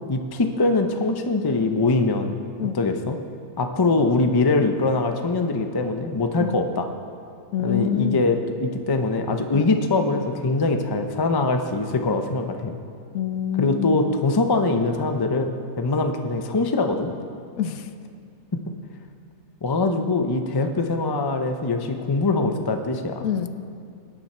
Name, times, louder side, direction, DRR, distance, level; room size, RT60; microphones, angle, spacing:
voice 1, 0.1-2.4 2.7-3.2 3.6-6.9 7.6-12.8 13.5-17.1 18.5-18.6 19.6-23.3, left 3 dB, 30° left, 6 dB, 0.4 m, -23 dB
voice 2, 7.5-8.3 9.5-9.7 13.1-14.1 17.6-17.8 23.2-23.5, left 8 dB, 75° left, 11 dB, 1.0 m, -26 dB
18.0 x 10.0 x 4.4 m, 2.3 s
omnidirectional pair, 1.6 m